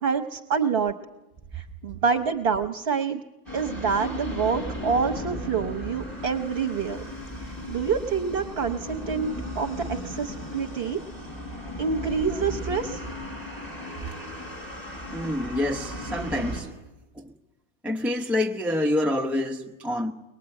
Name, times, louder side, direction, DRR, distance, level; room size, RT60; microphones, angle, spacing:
voice 1, 0.0-0.9 1.5-3.2 3.5-7.0 7.4-11.0 11.8-13.0, right 6 dB, 55° right, 1.2 m, -27 dB
sound 1, 3.5-16.6, left 1 dB, 15° left, 6.1 m, -36 dB
voice 2, 15.1-16.7 17.1-17.3 17.8-20.1, left 1 dB, ahead, 0.8 m, -27 dB
23.0 x 20.0 x 8.9 m
omnidirectional pair, 1.2 m